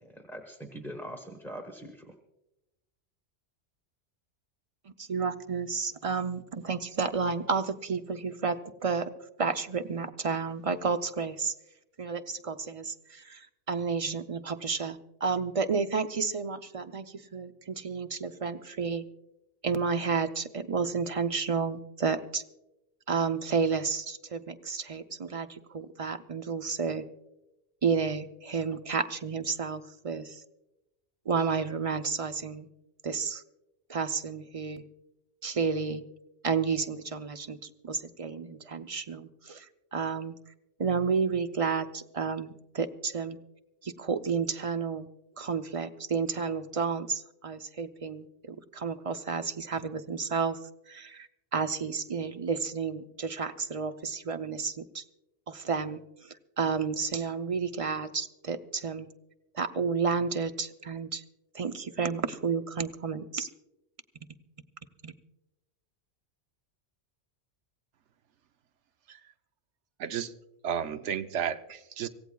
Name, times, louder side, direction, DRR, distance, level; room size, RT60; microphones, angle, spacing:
voice 1, 0.0-2.1, equal, ahead, 3 dB, 1.0 m, -42 dB
voice 2, 5.0-9.1 9.4-11.5 12.0-19.0 19.6-22.4 23.1-27.0 27.8-30.4 31.3-32.7 33.0-33.4 33.9-34.8 35.4-36.0 36.4-37.6 37.8-39.7 39.9-40.3 40.8-43.4 43.8-45.1 45.4-50.6 50.9-55.0 55.5-56.0 56.6-59.1 59.5-61.2 61.5-63.5 65.0-65.1, right 5 dB, 35° right, 8 dB, 0.6 m, -31 dB
voice 3, 70.0-70.3 70.6-72.1, right 8 dB, 80° right, 9 dB, 1.1 m, -32 dB
25.0 x 16.5 x 2.3 m, 0.93 s
omnidirectional pair, 1.2 m